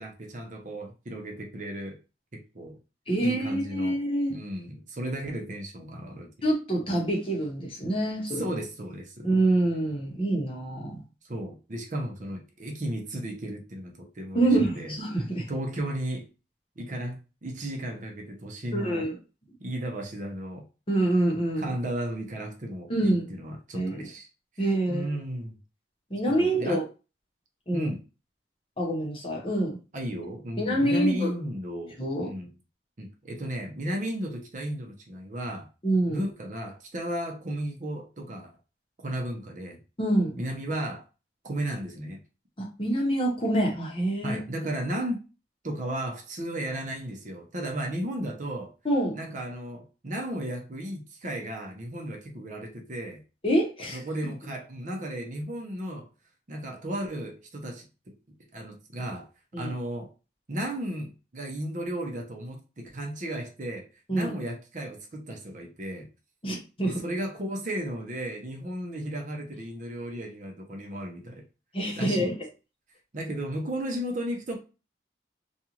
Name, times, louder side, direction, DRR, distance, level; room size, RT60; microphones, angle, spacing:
voice 1, 0.0-2.0 2.3-2.8 3.2-4.0 4.3-6.3 8.3-9.3 11.2-14.9 15.5-16.3 16.8-19.1 19.6-20.6 21.6-24.3 24.6-25.6 26.3-26.8 27.7-28.0 29.9-32.5 33.0-35.7 36.1-38.5 39.0-39.8 40.4-41.0 41.4-42.2 44.2-45.2 45.6-48.7 49.1-53.2 53.9-56.1 56.5-58.1 58.5-59.3 59.6-60.1 60.5-66.1 66.8-71.4 71.9-72.3 73.1-74.6, right 1 dB, 45° right, 0.7 m, -34 dB
voice 2, 3.1-4.3 6.4-8.4 9.2-11.0 14.3-15.5 18.7-19.2 20.9-21.6 22.9-23.2 23.7-24.1 24.6-25.1 26.1-26.8 27.7-27.9 28.8-29.8 30.6-31.3 32.0-32.3 35.8-36.2 40.0-40.4 42.6-44.4 48.8-49.2 53.4-54.0 59.5-59.7 64.1-64.3 66.4-67.0 71.7-72.4, right 1 dB, 30° left, 0.9 m, -26 dB
2.6 x 2.3 x 2.9 m
head